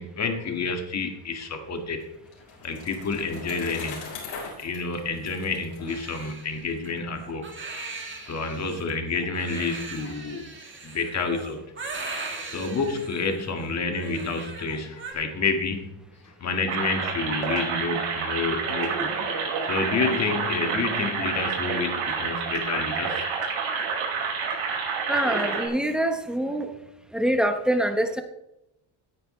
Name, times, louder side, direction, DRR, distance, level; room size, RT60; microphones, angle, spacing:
voice 1, 0.0-2.0 2.6-4.0 4.6-7.5 8.2-10.5 10.8-11.6 12.5-15.9 16.4-19.1 19.7-23.2, left 4 dB, 35° left, 4 dB, 2.0 m, -29 dB
Bicycle, 1.7-6.8, left 4 dB, 80° left, 5.1 m, -41 dB
Crying sobbing, 5.9-15.1, right 3 dB, 25° right, 2.4 m, -39 dB
sound 1, 16.7-25.7, right 5 dB, 85° right, 5.6 m, -28 dB
voice 2, 25.1-26.7 27.1-28.2, right 1 dB, ahead, 5 dB, 1.1 m, -25 dB
17.5 x 9.8 x 3.3 m, 0.87 s
cardioid pair, 145°, 48 cm